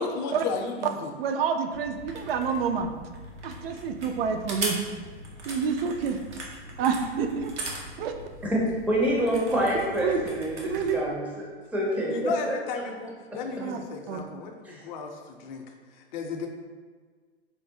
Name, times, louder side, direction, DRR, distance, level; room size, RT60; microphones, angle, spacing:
voice 1, 0.0-1.1 12.1-15.6 16.1-16.5, left 5 dB, 45° left, 4 dB, 0.5 m, -34 dB
voice 2, 1.2-2.9 3.4-4.8 5.5-6.2 6.8-7.5 8.0-8.1 10.0-10.2 10.7-11.0 13.6-13.8 14.1-14.2, right 6 dB, 60° right, 6 dB, 0.4 m, -28 dB
sound 1, 1.7-11.0, right 1 dB, 85° right, 0.8 m, -39 dB
voice 3, 8.9-11.2 11.7-12.8 14.6-14.8, right 1 dB, 5° right, -4 dB, 0.5 m, -27 dB
4.4 x 2.0 x 2.6 m, 1.5 s
hypercardioid pair, 110°, 33 cm